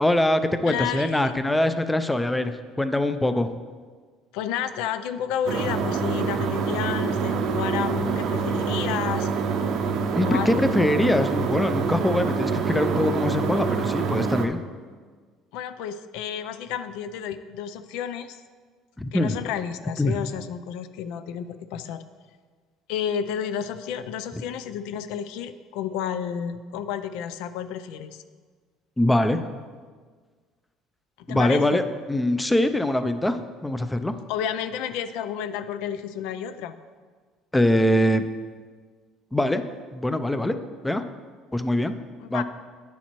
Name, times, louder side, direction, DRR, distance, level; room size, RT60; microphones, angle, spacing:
voice 1, 0.0-3.5 10.1-14.6 19.0-19.4 20.0-20.2 29.0-29.5 31.3-31.8 32.1-34.1 37.5-38.2 39.3-39.6 39.9-40.6 40.8-41.0 41.5-41.9 42.3-42.4, left 1 dB, 10° left, 10 dB, 0.4 m, -23 dB
voice 2, 0.6-1.3 4.3-9.3 10.2-10.7 15.5-18.4 19.1-22.0 22.9-28.2 31.2-31.8 34.3-36.7 42.2-42.4, left 9 dB, 85° left, 12 dB, 0.4 m, -31 dB
sound 1, 5.5-14.5, right 5 dB, 60° right, 0.6 m, -26 dB
9.6 x 7.1 x 3.0 m, 1.5 s
cardioid pair, 125°, 0 cm